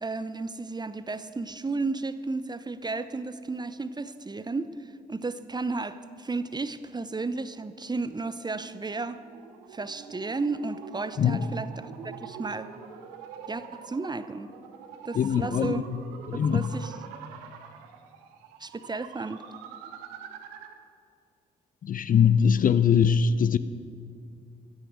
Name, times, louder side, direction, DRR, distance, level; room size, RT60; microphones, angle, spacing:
voice 1, 0.0-9.2 9.7-12.7 13.5-14.5 15.0-15.8 16.3-16.9 18.6-19.4, right 3 dB, 20° right, 0.8 m, -33 dB
sound 1, 8.1-20.9, right 7 dB, 70° right, 0.9 m, -45 dB
voice 2, 15.1-16.0 16.3-16.7 21.8-23.6, left 7 dB, 40° left, 0.6 m, -22 dB
14.5 x 12.5 x 6.4 m
figure-of-eight pair, 40°, 21 cm